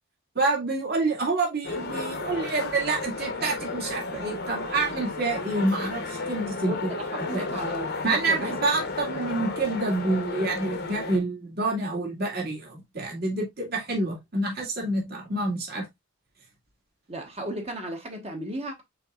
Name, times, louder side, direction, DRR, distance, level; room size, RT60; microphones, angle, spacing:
voice 1, 0.4-7.0 7.2-7.5 8.0-15.9, right 2 dB, 50° right, 2.0 m, -28 dB
sound 1, 1.6-11.2, left 3 dB, 50° left, 0.9 m, -33 dB
voice 2, 6.6-8.5 17.1-18.8, right 1 dB, 30° right, 1.2 m, -35 dB
5.7 x 3.9 x 2.4 m
head